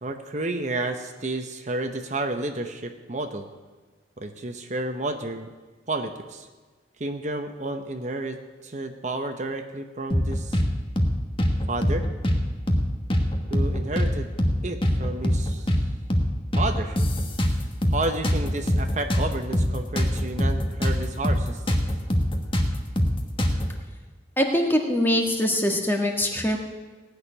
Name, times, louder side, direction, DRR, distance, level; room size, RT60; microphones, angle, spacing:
voice 1, 0.0-3.5 4.2-5.5 5.9-6.5 7.0-10.6 11.7-12.1 13.5-14.3 14.6-15.8 16.6-17.0 17.9-21.8, right 2 dB, 40° right, 6 dB, 0.9 m, -31 dB
sound 1, 10.1-10.7 11.0-11.1 11.4-12.4 12.7-12.8 13.1-14.1 14.4-14.6 14.8-15.8 16.1-16.3 16.5-18.0 18.2-21.0 21.2-21.4 21.7-23.7, equal, 30° left, 1.4 m, -22 dB
voice 2, 24.4-26.6, left 1 dB, 10° left, 2 dB, 1.5 m, -23 dB
17.5 x 6.6 x 9.8 m, 1.3 s
head